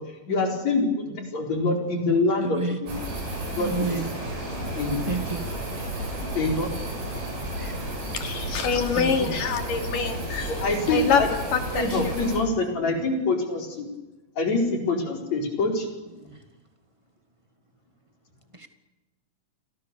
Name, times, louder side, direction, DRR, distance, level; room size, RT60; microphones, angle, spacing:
voice 1, 0.3-2.9 3.6-4.0 4.8-5.2 6.3-6.7 10.5-11.3 11.7-13.9 14.4-15.9, left 3 dB, 55° left, 3 dB, 5.6 m, -25 dB
voice 2, 2.4-2.8 3.5-4.1 5.0-5.6 7.6-7.8 9.0-9.4 16.1-16.4 18.5-18.7, right 3 dB, 10° right, 7 dB, 1.8 m, -31 dB
sound 1, 2.9-12.4, right 1 dB, 85° right, 8.2 m, -32 dB
voice 3, 7.9-11.2 11.5-12.3, left 6 dB, 90° left, 6 dB, 4.3 m, -26 dB
30.0 x 24.0 x 6.9 m, 1.1 s
omnidirectional pair, 3.7 m